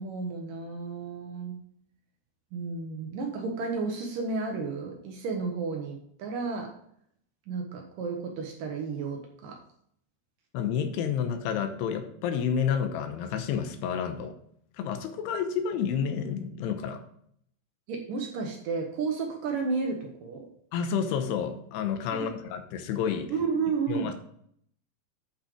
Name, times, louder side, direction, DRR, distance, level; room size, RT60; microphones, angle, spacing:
voice 1, 0.0-1.6 2.5-6.7 7.5-9.6 17.9-20.5 22.1-22.3 23.3-24.1, right 4 dB, 65° right, 2 dB, 2.3 m, -32 dB
voice 2, 10.5-14.4 14.8-17.0 20.7-23.3 23.9-24.1, left 7 dB, 90° left, 8 dB, 2.9 m, -30 dB
9.0 x 5.7 x 4.9 m, 0.67 s
omnidirectional pair, 4.7 m